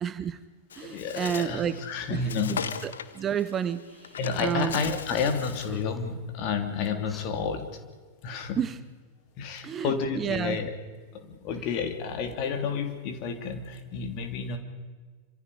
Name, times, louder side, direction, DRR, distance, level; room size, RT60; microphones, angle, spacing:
voice 1, 0.0-0.4 0.8-1.8 2.1-2.2 2.5-4.1 4.4-4.8 8.6-8.8 9.6-10.6, right 8 dB, 25° right, 14 dB, 1.0 m, -30 dB
Bird, 0.7-5.8, left 7 dB, 65° left, 1.2 m, -39 dB
voice 2, 0.8-2.7 4.2-7.7 8.2-8.7 9.4-10.8 11.1-14.6, left 5 dB, 40° left, 6 dB, 3.2 m, -30 dB
sound 1, 5.6-6.2 7.0-7.3, left 2 dB, 10° left, 1.9 m, -48 dB
28.0 x 26.0 x 5.1 m, 1.4 s
figure-of-eight pair, 90°, 0 cm